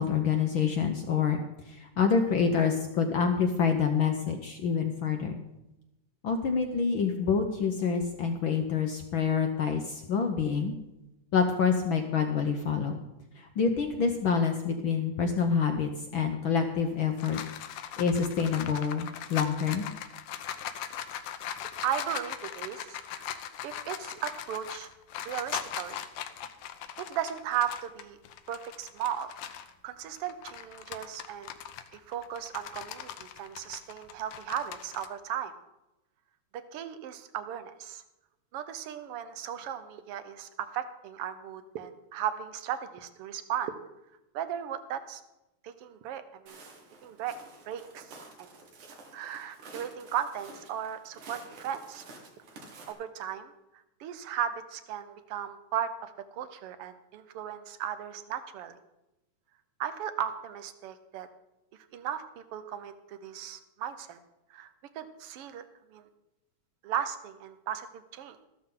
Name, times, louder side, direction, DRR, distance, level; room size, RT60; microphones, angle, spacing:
voice 1, 0.0-1.4 1.7-5.4 6.2-10.7 11.3-13.0 13.4-17.4 18.0-19.8, left 6 dB, 70° left, 4 dB, 1.2 m, -27 dB
sound 1, 16.8-29.7 30.2-35.1, left 10 dB, 85° left, 2.3 m, -40 dB
voice 2, 21.8-23.2 23.6-24.9 25.2-26.0 27.1-28.2 28.5-29.6 29.8-31.5 31.9-35.5 36.7-38.0 38.5-43.7 44.3-45.2 45.6-46.6 47.0-47.3 47.7-48.5 49.1-52.0 52.9-53.5 54.0-58.8 59.8-61.3 61.9-64.2 64.5-64.7 64.9-65.6 65.9-66.1 66.8-68.4, right 9 dB, 65° right, 11 dB, 1.5 m, -36 dB
Walk footsteps, 46.5-52.9, right 3 dB, 85° right, 3.4 m, -50 dB
14.0 x 13.0 x 3.8 m, 0.95 s
omnidirectional pair, 3.4 m